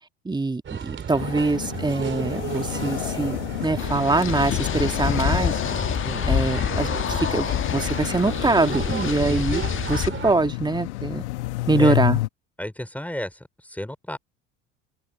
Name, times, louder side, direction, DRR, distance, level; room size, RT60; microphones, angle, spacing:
voice 1, 0.3-5.6 6.3-9.6 9.9-11.2 11.7-12.2, right 3 dB, 10° right, 2.1 m, -24 dB
sound 1, 0.6-10.3, right 8 dB, 30° right, 3.3 m, -34 dB
sound 2, 1.2-12.3, left 18 dB, 65° left, 1.8 m, -31 dB
sound 3, 3.8-10.1, left 10 dB, 35° left, 1.5 m, -27 dB
voice 2, 12.6-14.2, left 1 dB, 5° left, 5.1 m, -33 dB
figure-of-eight pair, 65°, 37 cm